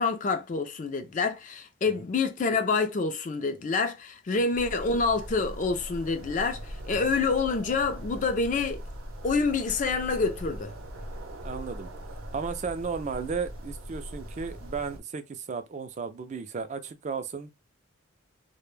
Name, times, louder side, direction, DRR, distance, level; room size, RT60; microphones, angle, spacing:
voice 1, 0.0-8.8 9.2-10.7, left 4 dB, 40° left, 0.3 m, -27 dB
sound 1, 4.5-15.0, equal, 85° right, 0.6 m, -40 dB
voice 2, 11.4-11.9 12.3-17.5, right 5 dB, 35° right, 0.3 m, -34 dB
2.1 x 2.0 x 3.1 m
head